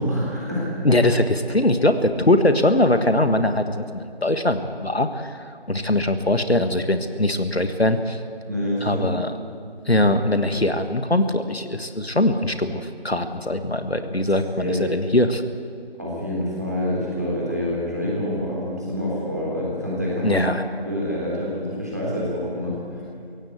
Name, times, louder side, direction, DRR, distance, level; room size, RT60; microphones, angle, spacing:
voice 1, 0.0-0.7 8.4-9.1 14.6-14.8 16.0-20.4 20.8-23.0, left 1 dB, 15° right, -6 dB, 3.6 m, -26 dB
voice 2, 0.8-8.2 8.8-9.3 9.9-15.4 20.2-20.6, left 1 dB, 70° left, 8 dB, 1.6 m, -21 dB
24.0 x 16.5 x 8.3 m, 2.4 s
figure-of-eight pair, 175°, 32 cm